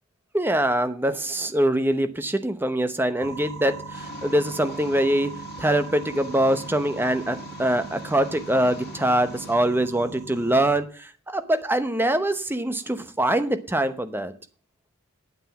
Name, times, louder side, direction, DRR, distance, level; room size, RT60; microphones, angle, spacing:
voice 1, 0.3-14.3, right 1 dB, 10° right, 10 dB, 0.9 m, -24 dB
sound 1, 3.2-10.8, right 4 dB, 70° right, 2.2 m, -40 dB
sound 2, 3.9-9.5, left 3 dB, 45° left, 2.0 m, -44 dB
9.4 x 8.9 x 7.0 m, 0.39 s
head